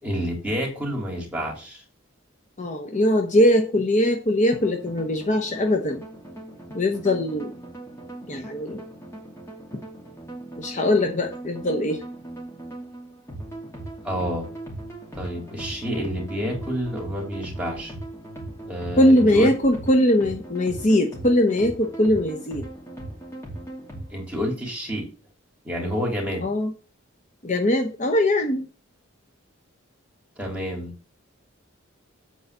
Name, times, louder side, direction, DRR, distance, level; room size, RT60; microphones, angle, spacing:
voice 1, 0.0-1.8 14.0-14.4 15.1-17.9 18.6-19.5 24.1-25.1 25.6-26.5 30.4-30.9, equal, 5° right, -2 dB, 3.4 m, -29 dB
voice 2, 2.6-6.0 6.7-7.5 8.3-8.8 10.6-12.0 19.0-22.7 26.4-26.7 27.4-28.6, left 1 dB, 35° left, 4 dB, 0.9 m, -21 dB
sound 1, 4.5-24.2, right 1 dB, 15° left, 2.8 m, -39 dB
8.2 x 4.9 x 6.7 m, 0.37 s
head